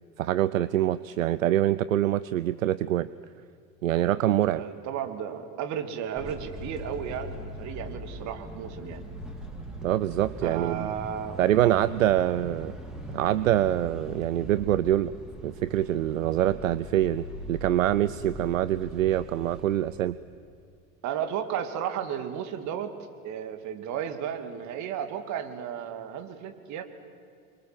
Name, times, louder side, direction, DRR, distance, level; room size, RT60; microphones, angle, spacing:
voice 1, 0.2-3.1 3.8-4.6 9.8-10.9 11.4-12.7 13.1-15.1 15.4-20.2, right 13 dB, 70° right, 17 dB, 0.7 m, -25 dB
voice 2, 4.5-9.1 10.4-11.4 21.0-22.9 23.2-26.8, right 9 dB, 45° right, 8 dB, 2.6 m, -33 dB
sound 1, 6.2-19.9, equal, ahead, 3.8 m, -41 dB
26.5 x 24.0 x 7.9 m, 2.5 s
figure-of-eight pair, 75°, 41 cm